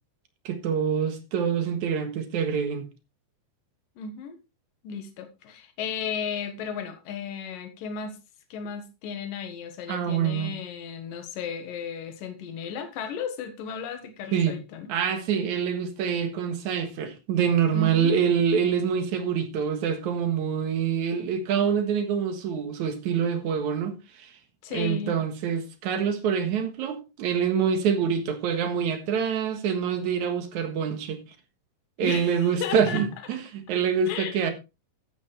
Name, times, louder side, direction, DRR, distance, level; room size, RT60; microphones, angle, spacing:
voice 1, 0.5-2.9 9.9-10.5 14.3-14.6 14.9-24.3 24.7-31.2 32.0-34.5, right 7 dB, 60° right, 2.6 m, -26 dB
voice 2, 4.0-4.4 4.8-8.2 8.5-14.9 17.7-18.1 24.6-25.2 32.0-33.0 34.1-34.4, left 6 dB, 65° left, 3.1 m, -34 dB
13.0 x 8.6 x 3.3 m
omnidirectional pair, 4.4 m